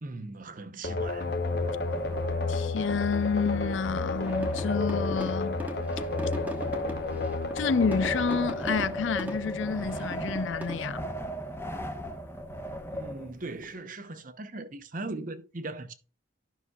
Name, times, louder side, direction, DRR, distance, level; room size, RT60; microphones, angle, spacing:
voice 1, 0.0-1.3 12.9-15.9, right 2 dB, 40° right, 0.8 m, -39 dB
sound 1, 0.8-9.5, left 3 dB, 55° left, 1.0 m, -32 dB
Wind, 1.0-13.7, equal, 10° left, 1.0 m, -37 dB
voice 2, 2.5-5.6 7.5-11.1, left 5 dB, 75° left, 0.5 m, -29 dB
sound 2, 4.2-10.8, equal, 10° right, 1.2 m, -40 dB
12.5 x 5.9 x 2.3 m
head